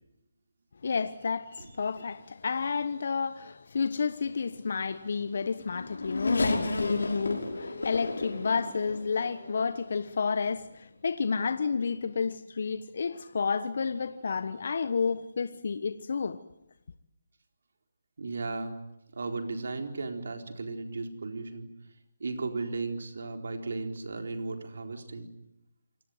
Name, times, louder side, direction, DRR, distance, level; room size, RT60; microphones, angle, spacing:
voice 1, 0.8-16.4, left 5 dB, 60° left, 1.2 m, -31 dB
Race car auto racing / Accelerating revving vroom, 5.2-9.8 10.5-10.6 11.7-11.9, left 2 dB, 80° left, 5.8 m, -32 dB
voice 2, 18.2-18.7 19.1-21.7 22.2-25.3, right 3 dB, 70° right, 4.1 m, -35 dB
28.0 x 18.5 x 9.5 m
figure-of-eight pair, 150°, 0 cm